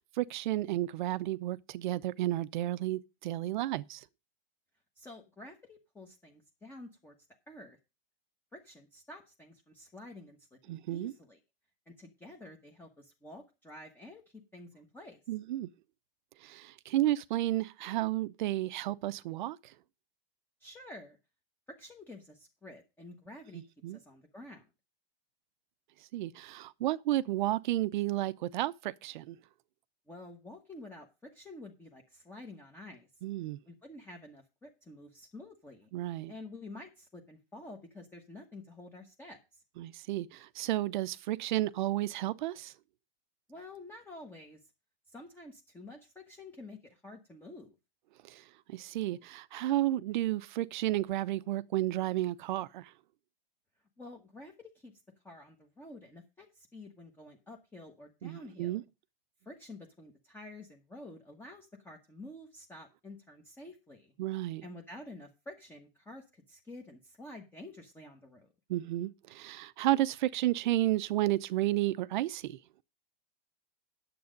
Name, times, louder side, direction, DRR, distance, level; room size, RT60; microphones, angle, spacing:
voice 1, 0.2-4.0 10.7-11.1 15.3-15.7 16.4-19.6 23.5-24.0 26.1-29.4 33.2-33.6 35.9-36.3 39.8-42.7 48.2-48.4 48.7-52.9 58.2-58.8 64.2-64.6 68.7-72.6, right 15 dB, 55° right, 0.7 m, -32 dB
voice 2, 5.0-7.1 7.5-7.8 8.5-10.4 10.7-11.4 11.9-14.2 14.5-15.2 20.6-21.2 21.8-23.6 23.9-24.7 30.1-33.1 33.7-35.9 36.3-39.6 43.5-44.6 45.1-47.7 54.0-54.9 55.2-58.8 59.4-64.1 64.6-68.5, left 2 dB, 5° left, 1.2 m, -49 dB
9.7 x 7.7 x 5.1 m
supercardioid pair, 160°, 29 cm